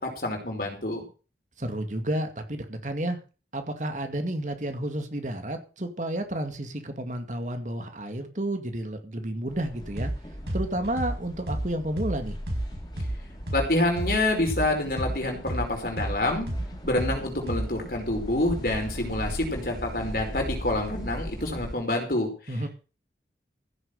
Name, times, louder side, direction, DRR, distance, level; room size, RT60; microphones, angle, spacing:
voice 1, 0.0-1.0 13.5-16.5 16.8-22.6, left 1 dB, 55° left, 2 dB, 5.1 m, -27 dB
voice 2, 1.6-3.2 3.5-10.1 10.5-12.4 22.5-22.7, right 1 dB, 45° right, 6 dB, 2.2 m, -31 dB
sound 1, 9.5-21.7, equal, 25° left, 3.6 m, -39 dB
sound 2, 10.0-10.2 10.5-14.2 14.5-17.9, right 1 dB, 75° right, 5.2 m, -31 dB
15.5 x 7.6 x 6.6 m, 0.35 s
head